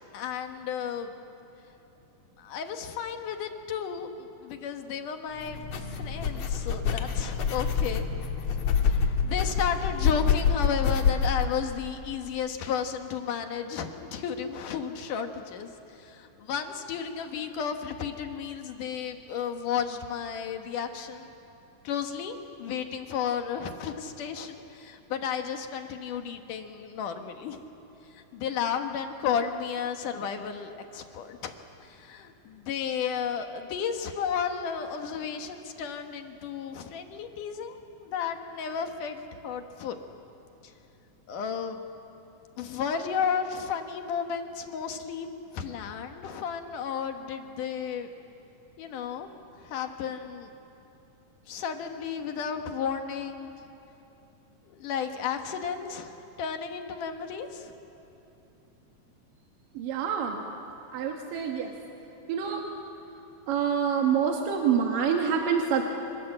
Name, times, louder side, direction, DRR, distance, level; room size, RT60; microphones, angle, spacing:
voice 1, 0.1-1.1 2.4-8.1 8.8-15.7 16.0-21.3 21.8-27.6 28.1-31.5 31.8-40.0 41.3-41.8 42.6-45.3 45.5-48.1 48.8-49.3 49.6-50.5 51.5-53.5 54.7-57.7, left 7 dB, 70° left, 6 dB, 2.8 m, -33 dB
sound 1, 5.4-11.5, left 6 dB, 55° left, 2.4 m, -26 dB
voice 2, 59.7-60.4 60.9-61.7 62.3-62.6 63.5-65.8, right 7 dB, 75° right, 1 dB, 3.2 m, -26 dB
26.5 x 26.5 x 7.9 m, 3.0 s
omnidirectional pair, 4.0 m